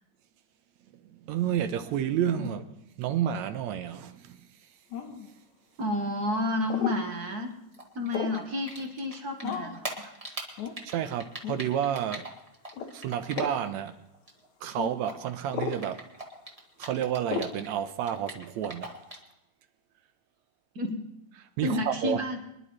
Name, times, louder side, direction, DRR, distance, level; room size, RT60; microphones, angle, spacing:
voice 1, 0.9-2.6 3.0-4.5 10.8-12.3 12.9-13.9 14.6-16.0 16.8-19.0 21.6-22.2, right 10 dB, 80° right, 2.1 m, -30 dB
sound 1, 4.9-5.3 6.7-7.0 8.1-8.5 9.4-9.8 10.6-10.8 11.4-11.6 12.7-12.9 13.3-13.6 14.8-14.9 15.5-15.8 17.3-17.6, left 7 dB, 85° left, 2.4 m, -34 dB
voice 2, 5.8-7.5 7.9-10.1 20.7-21.0 21.6-22.4, left 1 dB, 45° right, 1.3 m, -30 dB
Typing, 7.7-9.1 9.4-13.9 14.1-17.7 18.0-19.3, right 1 dB, 15° right, 1.4 m, -41 dB
25.5 x 11.0 x 3.1 m
omnidirectional pair, 3.3 m